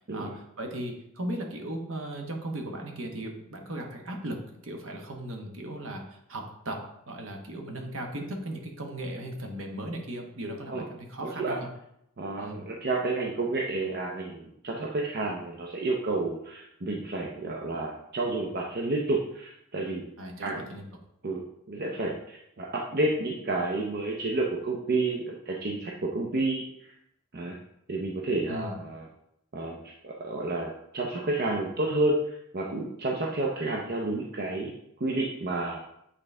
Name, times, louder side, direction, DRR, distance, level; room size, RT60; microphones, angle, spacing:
voice 1, 0.0-6.8 7.1-11.7 12.4-12.6 20.2-20.8 28.5-28.7, right 1 dB, 65° right, 2 dB, 1.1 m, -37 dB
voice 2, 11.2-11.6 12.2-20.1 20.4-20.7 21.2-21.4 21.7-26.6 27.3-27.5 27.9-29.1 29.5-34.7 35.0-35.8, right 2 dB, 45° right, -2 dB, 0.7 m, -30 dB
8.4 x 4.0 x 3.3 m, 0.76 s
head